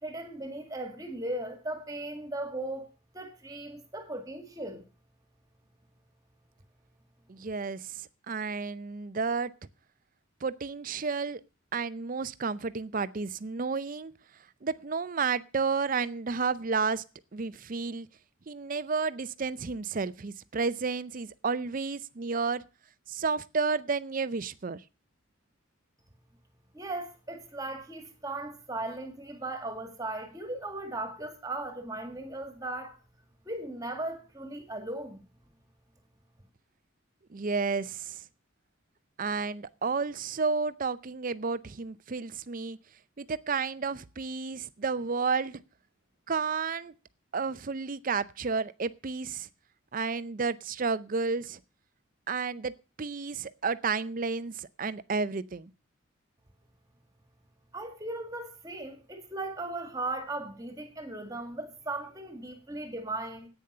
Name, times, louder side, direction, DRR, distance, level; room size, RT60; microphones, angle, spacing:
voice 1, 0.0-2.9 3.1-4.8 26.7-33.0 33.5-35.2 57.7-63.5, right 2 dB, 15° right, 1.9 m, -37 dB
voice 2, 7.3-9.5 10.4-11.4 11.7-14.1 14.6-17.0 17.3-18.1 18.5-22.6 23.1-24.8 37.3-38.2 39.2-42.8 43.2-45.6 46.3-46.9 47.3-49.5 49.9-51.6 52.3-55.7, right 4 dB, 40° right, 0.5 m, -31 dB
10.5 x 9.1 x 6.6 m
head